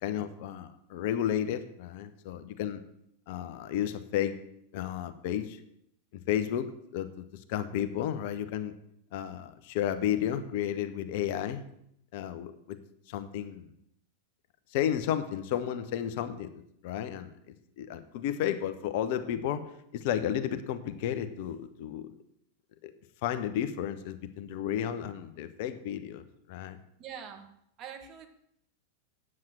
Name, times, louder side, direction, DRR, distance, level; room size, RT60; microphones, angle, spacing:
voice 1, 0.0-2.8 3.3-4.4 4.7-5.6 6.1-8.7 9.1-11.6 12.1-12.8 13.1-13.7 14.7-19.6 19.9-22.1 22.8-22.9 23.2-26.8, left 10 dB, 50° left, 10 dB, 0.8 m, -32 dB
voice 2, 27.0-27.5 27.8-28.3, right 8 dB, 35° right, 6 dB, 1.5 m, -43 dB
8.8 x 7.6 x 7.7 m, 0.73 s
figure-of-eight pair, 90°, 0 cm